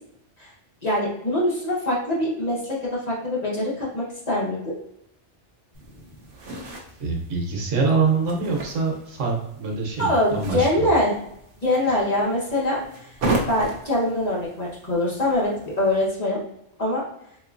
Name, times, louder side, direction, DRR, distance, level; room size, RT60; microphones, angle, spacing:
voice 1, 0.8-4.7 10.0-11.2 11.6-13.1 13.4-15.5 15.8-16.4 16.8-17.0, left 1 dB, 35° left, -6 dB, 1.1 m, -23 dB
sound 1, 5.7-16.1, right 2 dB, 55° right, 0.8 m, -35 dB
voice 2, 7.0-10.9, right 4 dB, 90° right, 0 dB, 1.2 m, -25 dB
3.7 x 2.9 x 2.5 m, 0.77 s
omnidirectional pair, 1.2 m